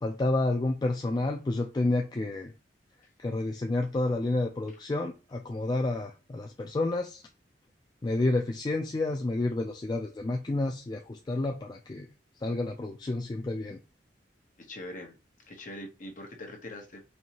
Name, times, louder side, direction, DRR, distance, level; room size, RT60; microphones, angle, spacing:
voice 1, 0.0-2.5 3.2-7.2 8.0-12.1 12.4-13.8, left 2 dB, 25° left, 3 dB, 0.3 m, -30 dB
voice 2, 14.6-15.2 15.5-17.0, left 1 dB, 45° left, 2 dB, 1.0 m, -42 dB
4.3 x 2.7 x 2.7 m, 0.30 s
head